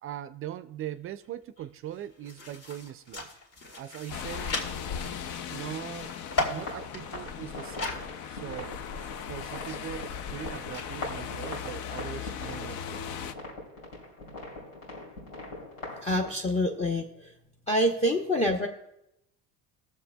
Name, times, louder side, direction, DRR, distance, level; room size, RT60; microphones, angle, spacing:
voice 1, 0.0-3.3 3.7-4.6 5.5-6.2 6.5-13.1, right 11 dB, 45° right, 0.4 m, -41 dB
sound 1, 1.2-1.3 1.6-8.1 8.4-8.5 9.3-10.9, left 2 dB, 50° left, 2.1 m, -37 dB
sound 2, 4.1-13.3, left 8 dB, 70° left, 0.6 m, -38 dB
sound 3, 6.4-16.3, left 2 dB, 90° left, 3.0 m, -42 dB
voice 2, 16.0-17.3 17.7-18.7, equal, 20° left, 0.7 m, -26 dB
21.0 x 7.1 x 2.2 m
cardioid pair, 105°, 32 cm